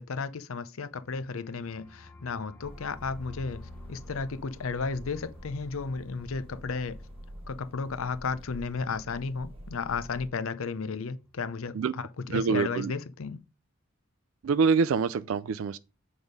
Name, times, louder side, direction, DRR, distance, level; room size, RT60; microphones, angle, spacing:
voice 1, 0.0-3.6 3.9-7.0 7.5-13.4, left 4 dB, 75° left, 0.6 m, -34 dB
sound 1, 1.0-10.6 10.9-11.0 11.3-11.7, left 3 dB, 5° left, 0.9 m, -53 dB
sound 2, 2.6-10.3, equal, 25° right, 0.9 m, -47 dB
voice 2, 12.3-12.9 14.4-15.8, right 5 dB, 70° right, 0.3 m, -25 dB
8.0 x 3.6 x 5.2 m
head